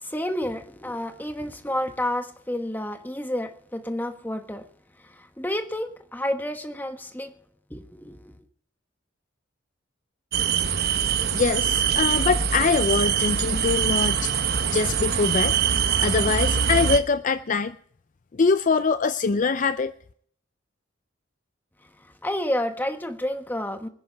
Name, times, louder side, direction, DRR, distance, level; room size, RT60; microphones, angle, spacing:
voice 1, 0.0-4.7 5.0-7.3 7.7-8.3 22.0-23.9, left 1 dB, 10° left, 1.2 m, -30 dB
sound 1, 10.3-17.0, right 7 dB, 50° right, 1.0 m, -23 dB
voice 2, 11.3-14.3 14.7-15.6 16.0-17.8 18.3-19.9, left 4 dB, 40° left, 0.4 m, -23 dB
25.0 x 10.5 x 3.4 m
head